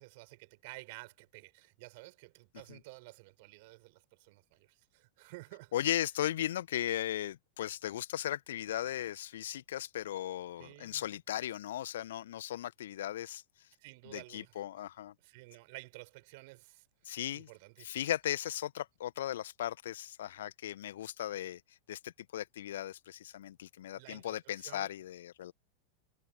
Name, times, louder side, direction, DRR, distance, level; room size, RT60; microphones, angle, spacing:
voice 1, 0.0-5.8 10.6-11.0 13.8-14.7 15.2-18.1 23.9-24.9, right 25 dB, 50° right, 5.7 m, -52 dB
voice 2, 5.7-13.4 14.1-15.1 17.1-17.5 17.8-21.6 21.9-25.5, left 12 dB, 60° left, 1.8 m, -37 dB
figure-of-eight pair, 90°, 0 cm